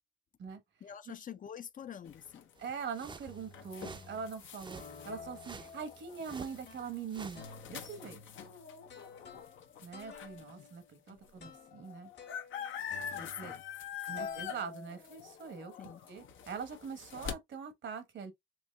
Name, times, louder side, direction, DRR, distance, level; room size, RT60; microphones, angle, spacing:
voice 1, 0.8-2.5 10.6-10.7 11.1-11.2 13.2-13.6 14.1-14.2 15.8-16.0, left 8 dB, 45° left, 0.4 m, -47 dB
sound 1, 1.8-2.2 2.8-2.9 3.3-4.3 4.8-7.0 7.4-13.9 14.2-15.6, left 4 dB, 60° left, 1.4 m, -51 dB
sound 2, 2.0-10.5 11.1-11.2 11.4-17.3, left 8 dB, 85° left, 0.8 m, -45 dB
sound 3, 2.6-7.5, right 4 dB, 25° right, 0.4 m, -51 dB
voice 2, 2.6-8.2 9.8-12.1 13.1-13.6 14.1-18.3, right 6 dB, 75° right, 1.2 m, -43 dB
4.5 x 2.9 x 2.2 m
cardioid pair, 75°, 19 cm